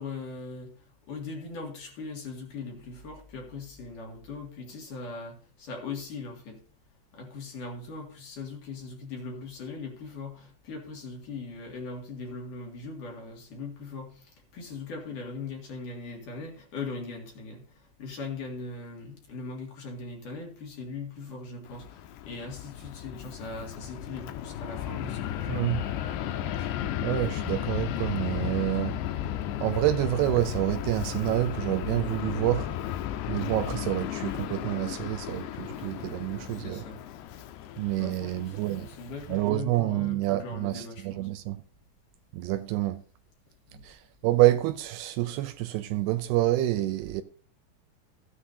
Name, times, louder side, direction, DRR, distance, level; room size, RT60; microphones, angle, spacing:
voice 1, 0.0-6.6 7.1-25.8 36.5-37.0 38.0-41.3 43.7-43.9, left 4 dB, 55° left, 3.4 m, -40 dB
Fixed-wing aircraft airplane, 21.7-39.5, left 11 dB, 85° left, 2.9 m, -34 dB
voice 2, 25.5-25.8 27.0-29.0 29.6-32.7 33.3-36.8 37.8-38.9 39.3-41.6 42.3-43.0 43.8-47.2, right 16 dB, 80° right, 2.5 m, -28 dB
15.0 x 9.7 x 2.7 m
omnidirectional pair, 4.9 m